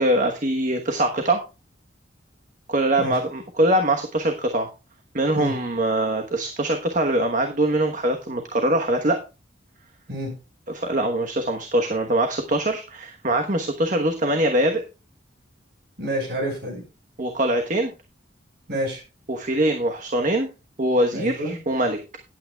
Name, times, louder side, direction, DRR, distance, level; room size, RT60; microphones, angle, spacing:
voice 1, 0.0-1.4 2.7-4.7 5.1-9.2 10.7-14.8 17.2-17.9 19.3-20.5 20.8-22.0, right 1 dB, 40° right, 4 dB, 1.1 m, -23 dB
voice 2, 16.0-16.8 18.7-19.0 21.1-21.6, equal, 55° right, 3 dB, 5.5 m, -28 dB
17.0 x 8.7 x 2.3 m, 0.29 s
head